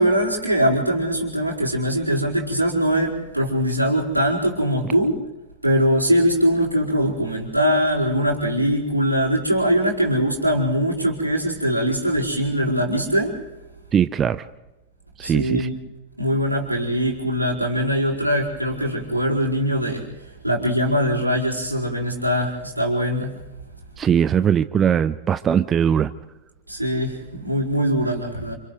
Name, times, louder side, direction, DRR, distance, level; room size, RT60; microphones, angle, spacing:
voice 1, 0.0-5.2 5.6-13.3 15.2-15.8 16.2-20.0 20.4-23.3 26.7-28.5, equal, 85° right, -3 dB, 4.7 m, -22 dB
voice 2, 13.9-14.4 15.2-15.7 24.0-26.1, right 8 dB, 25° right, 14 dB, 0.7 m, -20 dB
29.5 x 29.5 x 3.2 m, 1.1 s
figure-of-eight pair, 90°, 0 cm